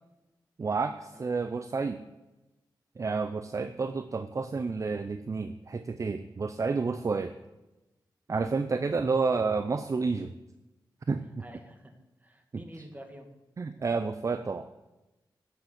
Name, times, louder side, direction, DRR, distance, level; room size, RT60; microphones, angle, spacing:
voice 1, 0.6-2.0 3.0-7.3 8.3-10.3 11.1-11.2 13.6-14.7, right 4 dB, 40° right, 10 dB, 0.5 m, -30 dB
voice 2, 1.1-1.7 3.6-3.9 8.3-8.6 11.4-11.9 12.2-13.3, right 1 dB, 20° right, 5 dB, 2.0 m, -49 dB
11.5 x 7.2 x 7.9 m, 1.0 s
cardioid pair, 80°, 8 cm